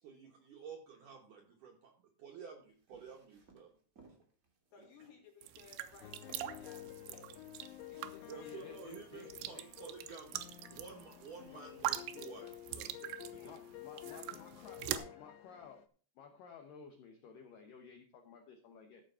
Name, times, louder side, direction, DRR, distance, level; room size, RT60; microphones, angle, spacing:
voice 1, 0.0-1.9 2.2-3.7 4.8-4.9 8.3-10.4 10.7-13.5, right 6 dB, 70° right, 2 dB, 2.0 m, -52 dB
sound 1, 2.6-14.2, right 3 dB, 50° right, 1.0 m, -67 dB
voice 2, 4.7-7.5 7.9-8.7 13.2-13.7 14.1-15.4, left 5 dB, 55° left, 2 dB, 3.2 m, -59 dB
sound 2, 5.4-15.0, right 13 dB, 90° right, 3.0 m, -43 dB
sound 3, 6.0-15.9, left 14 dB, 90° left, 3.0 m, -51 dB
voice 3, 8.3-9.7 11.5-11.6 13.4-15.8 16.2-19.0, left 5 dB, 75° left, 4 dB, 2.1 m, -54 dB
14.0 x 5.2 x 5.5 m, 0.43 s
omnidirectional pair, 5.1 m